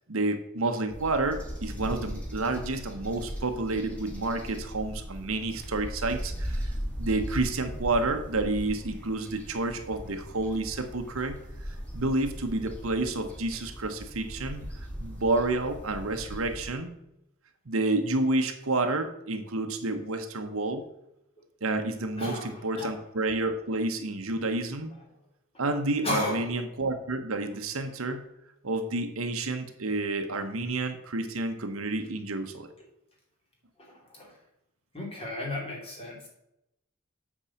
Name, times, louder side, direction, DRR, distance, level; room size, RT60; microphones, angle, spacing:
voice 1, 0.1-14.7 15.0-17.0 17.7-20.8 21.6-24.9 25.6-28.3 28.6-32.7, right 2 dB, 70° right, 7 dB, 1.0 m, -30 dB
sound 1, 0.9-16.7, equal, 5° left, 2.4 m, -38 dB
voice 2, 22.2-22.9 26.0-26.4 34.1-34.3 34.9-36.3, left 1 dB, 30° left, -1 dB, 2.8 m, -33 dB
8.5 x 4.7 x 7.1 m, 0.84 s
head